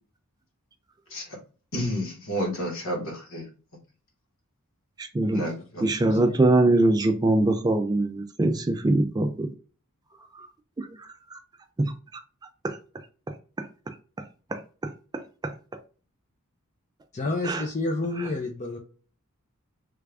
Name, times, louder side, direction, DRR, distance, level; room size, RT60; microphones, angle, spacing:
voice 1, 1.7-3.4 5.3-5.8, equal, 65° left, 1.3 m, -31 dB
voice 2, 5.0-5.4 5.8-9.5 10.8-10.9 11.3-11.4 11.8-11.9 12.6-12.8 13.6-13.7 14.5-15.5 17.4-17.6 18.2-18.3, right 2 dB, 20° right, 0.3 m, -23 dB
voice 3, 6.0-6.5 17.1-18.8, left 2 dB, 35° left, 0.5 m, -30 dB
3.3 x 2.4 x 3.3 m
head